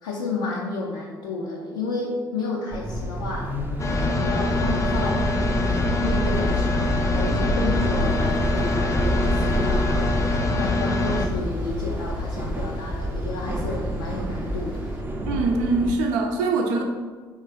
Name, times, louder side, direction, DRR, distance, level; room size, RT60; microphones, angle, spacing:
voice 1, 0.0-3.5 4.0-10.2 10.6-14.8, left 3 dB, 75° left, -4 dB, 0.5 m, -31 dB
sound 1, 2.7-15.9, equal, 15° right, 0.5 m, -28 dB
sound 2, 3.8-11.3, left 2 dB, 25° left, 0.6 m, -24 dB
sound 3, 7.6-15.0, left 1 dB, 90° left, 1.2 m, -40 dB
voice 2, 15.3-16.8, right 3 dB, 65° right, 3 dB, 0.5 m, -23 dB
3.7 x 3.0 x 4.0 m, 1.4 s
figure-of-eight pair, 45°, 11 cm